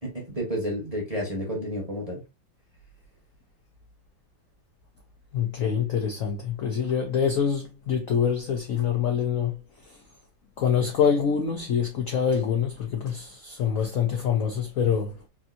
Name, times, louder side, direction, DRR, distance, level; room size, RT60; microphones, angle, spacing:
voice 1, 0.0-2.2, equal, 30° right, 0.7 m, -31 dB
voice 2, 5.3-9.6 9.8-10.0 10.6-15.2, left 7 dB, 75° left, 0.7 m, -25 dB
3.5 x 2.6 x 2.5 m
omnidirectional pair, 2.1 m